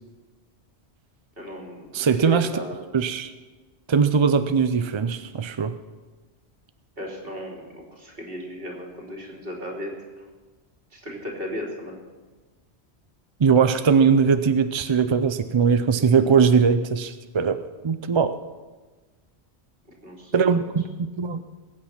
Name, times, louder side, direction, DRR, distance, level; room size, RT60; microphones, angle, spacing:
voice 1, 1.4-2.8 7.0-9.9 10.9-12.0 20.0-20.4, equal, 60° right, -1 dB, 3.3 m, -35 dB
voice 2, 1.9-2.5 2.9-3.3 3.9-5.7 13.4-17.6 17.8-18.4 20.3-20.8 21.2-21.4, right 6 dB, 40° right, 10 dB, 0.4 m, -20 dB
21.0 x 8.8 x 5.9 m, 1.3 s
omnidirectional pair, 1.1 m